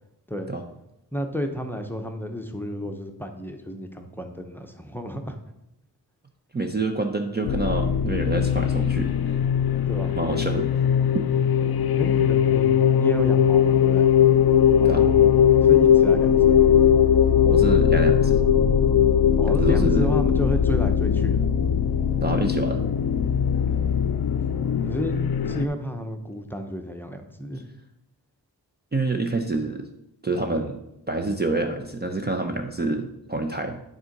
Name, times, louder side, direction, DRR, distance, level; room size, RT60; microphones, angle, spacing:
voice 1, 1.1-5.4 9.9-10.2 12.0-14.1 14.8-16.7 19.4-21.5 24.8-27.6, equal, 5° left, 5 dB, 0.7 m, -32 dB
voice 2, 6.5-9.1 10.2-10.7 14.8-15.0 17.4-18.4 19.5-20.1 22.2-22.8 28.9-29.9 30.2-30.8 31.1-33.8, right 2 dB, 25° right, 4 dB, 0.6 m, -27 dB
sound 1, 7.4-25.7, left 8 dB, 60° left, 0.5 m, -20 dB
9.2 x 3.7 x 5.2 m, 0.87 s
wide cardioid pair, 80°, 42 cm